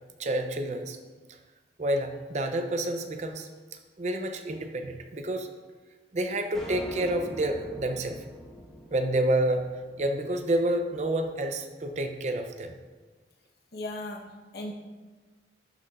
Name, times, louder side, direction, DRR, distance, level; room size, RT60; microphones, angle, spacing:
voice 1, 0.2-1.0 1.8-5.5 6.1-8.2 8.9-9.7 10.0-12.8, right 1 dB, 40° right, 6 dB, 0.5 m, -29 dB
sound 1, 6.5-11.0, equal, ahead, 1.4 m, -44 dB
voice 2, 13.7-14.7, left 1 dB, 60° left, 1 dB, 1.0 m, -37 dB
12.0 x 5.7 x 2.4 m, 1.3 s
head